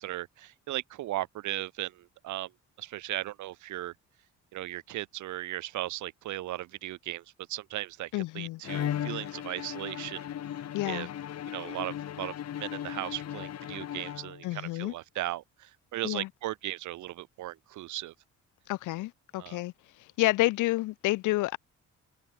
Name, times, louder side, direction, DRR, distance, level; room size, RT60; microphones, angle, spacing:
voice 1, 0.0-2.5 2.8-3.9 4.5-10.3 10.8-11.1 11.5-18.1 19.4-19.6, right 15 dB, 75° right, 0.8 m, -37 dB
voice 2, 8.1-8.6 10.7-11.1 14.4-14.9 16.0-16.3 18.7-19.7 20.0-21.6, left 18 dB, 90° left, 0.8 m, -29 dB
Bowed string instrument, 8.6-14.7, left 10 dB, 55° left, 1.3 m, -37 dB
cardioid pair, 90°, 30 cm